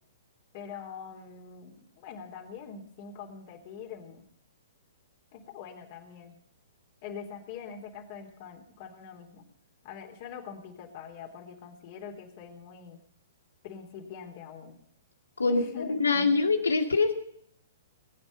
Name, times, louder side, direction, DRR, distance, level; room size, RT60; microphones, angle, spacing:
voice 1, 0.5-4.2 5.3-6.4 7.0-9.4 9.8-13.0 13.6-14.8 15.5-16.3, left 6 dB, 45° left, 1 dB, 3.7 m, -44 dB
voice 2, 15.4-17.1, left 4 dB, 85° left, 5 dB, 2.3 m, -24 dB
21.0 x 9.5 x 5.5 m, 0.66 s
figure-of-eight pair, 120°, 0 cm